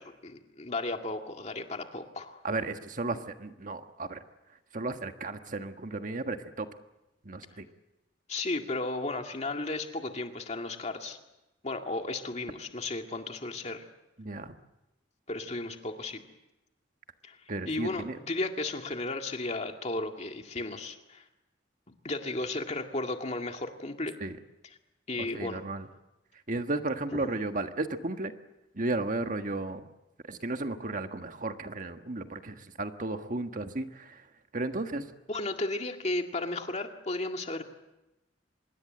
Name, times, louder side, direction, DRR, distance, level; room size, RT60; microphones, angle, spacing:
voice 1, 0.0-2.4 8.3-11.2 11.6-13.8 15.3-16.2 17.2-17.4 17.7-21.3 22.0-24.1 25.1-25.6 27.2-27.3 35.3-37.6, left 2 dB, 40° left, 4 dB, 2.1 m, -34 dB
voice 2, 2.4-4.2 4.7-6.7 7.2-7.6 14.2-14.5 17.5-18.2 24.2-24.4 25.3-25.9 26.5-28.3 28.7-29.9 30.3-34.2 34.5-35.0, right 2 dB, 45° right, 7 dB, 1.5 m, -34 dB
25.5 x 21.5 x 7.8 m, 0.97 s
head